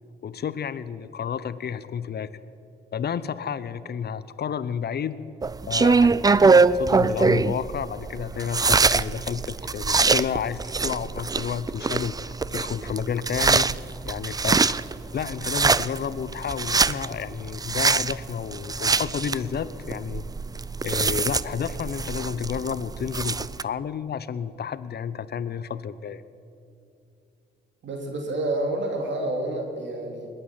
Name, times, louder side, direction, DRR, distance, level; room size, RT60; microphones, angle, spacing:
voice 1, 0.2-2.3 2.9-5.2 5.7-13.7 14.0-14.6 15.1-20.2 20.8-26.2, left 7 dB, 50° left, 16 dB, 0.8 m, -31 dB
sound 1, 5.4-23.6, right 4 dB, 20° right, 0.4 m, -23 dB
voice 2, 27.8-30.3, right 1 dB, 60° right, 2 dB, 3.1 m, -29 dB
21.0 x 9.1 x 7.4 m, 2.6 s
supercardioid pair, 60°, 21 cm